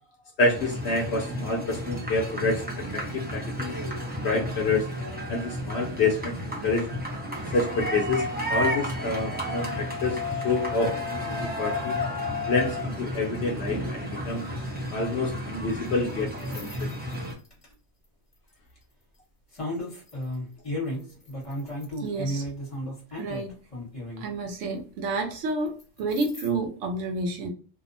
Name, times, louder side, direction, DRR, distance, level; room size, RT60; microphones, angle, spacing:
voice 1, 0.4-2.6 2.9-3.8 4.2-4.9 5.3-6.9 7.5-12.0 12.5-14.4 14.9-16.9, left 3 dB, 65° left, 1 dB, 0.7 m, -28 dB
sound 1, 0.5-17.3, left 1 dB, 15° right, 0.4 m, -32 dB
sound 2, 16.4-17.7 18.5-18.8 19.5-24.3 25.8-26.5, left 1 dB, 25° left, 1.0 m, -34 dB
voice 2, 22.0-22.5 23.1-23.5 24.2-27.5, right 2 dB, 70° right, 4 dB, 0.9 m, -30 dB
2.6 x 2.1 x 2.5 m, 0.39 s
omnidirectional pair, 1.4 m